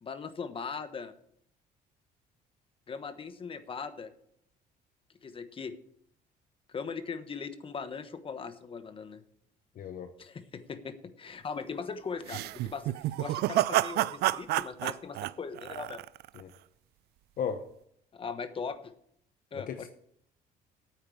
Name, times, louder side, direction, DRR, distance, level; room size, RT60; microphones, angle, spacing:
voice 1, 0.0-1.1 2.9-4.1 5.2-5.7 6.7-9.2 10.2-16.0 18.1-18.9 19.5-19.9, left 5 dB, 30° left, 11 dB, 1.2 m, -39 dB
voice 2, 9.8-10.1 16.3-16.5 17.4-17.7 19.5-19.9, left 7 dB, 55° left, 8 dB, 0.9 m, -35 dB
sound 1, 12.3-16.4, right 16 dB, 70° right, 0.4 m, -29 dB
9.3 x 8.7 x 7.2 m, 0.70 s
cardioid pair, 110°, 17 cm